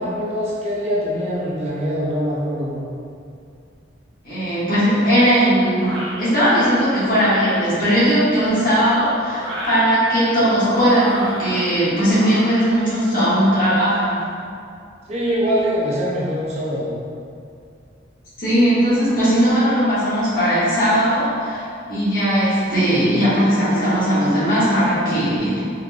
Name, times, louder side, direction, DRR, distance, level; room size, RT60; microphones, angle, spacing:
voice 1, 0.0-2.8 15.1-17.0, equal, 35° right, -5 dB, 0.5 m, -23 dB
voice 2, 4.2-5.9 6.2-14.2 18.4-21.6 21.9-25.6, equal, 45° left, -12 dB, 1.4 m, -18 dB
sound 1, 5.8-6.2 7.1-7.6 8.6-9.8 10.5-11.7 12.1-12.7, right 1 dB, 75° right, 0.6 m, -31 dB
3.7 x 3.1 x 2.3 m, 2.4 s
head